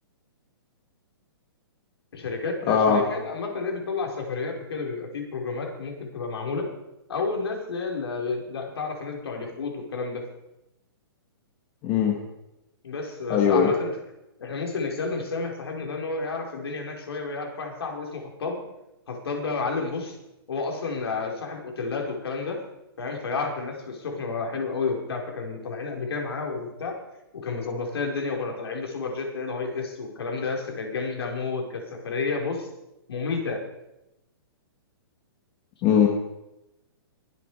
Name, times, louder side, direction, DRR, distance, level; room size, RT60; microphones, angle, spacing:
voice 1, 2.1-6.7 7.1-10.2 12.8-14.0 14.4-18.6 19.1-20.2 20.5-22.6 23.0-27.0 27.3-32.7 33.1-33.6, left 4 dB, 75° left, 1 dB, 4.4 m, -31 dB
voice 2, 2.7-3.0 11.8-12.2 13.3-13.7 35.8-36.1, left 7 dB, 25° left, 1 dB, 1.8 m, -20 dB
23.0 x 8.1 x 4.8 m, 0.92 s
hypercardioid pair, 160°, 13 cm